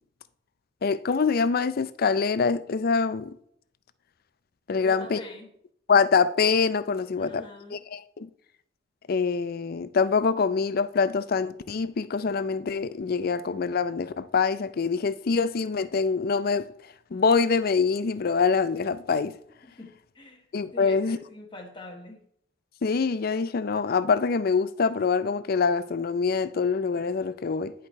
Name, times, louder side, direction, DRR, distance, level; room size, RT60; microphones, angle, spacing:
voice 1, 0.8-3.4 4.7-5.2 5.9-7.4 7.7-8.3 9.1-16.7 17.1-19.3 20.5-21.2 22.8-27.7, left 5 dB, 55° left, 0.5 m, -25 dB
voice 2, 4.8-5.5 7.2-7.8 19.6-20.5 20.7-22.2, left 2 dB, 25° left, 1.2 m, -43 dB
10.5 x 5.0 x 4.2 m
head